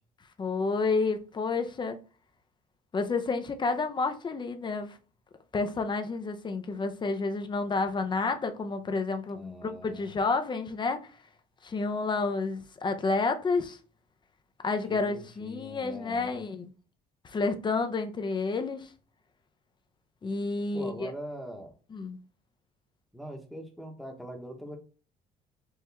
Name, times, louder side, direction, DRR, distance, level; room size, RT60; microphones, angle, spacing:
voice 1, 0.4-2.0 2.9-5.0 5.5-11.1 11.6-13.8 14.6-16.7 17.2-18.9 20.2-21.1 21.9-22.2, left 3 dB, 25° left, 0.7 m, -30 dB
voice 2, 9.3-10.1 14.9-16.4 20.7-21.7 23.1-24.8, equal, ahead, 1.1 m, -42 dB
4.7 x 2.9 x 3.4 m
cardioid pair, 110°, 17 cm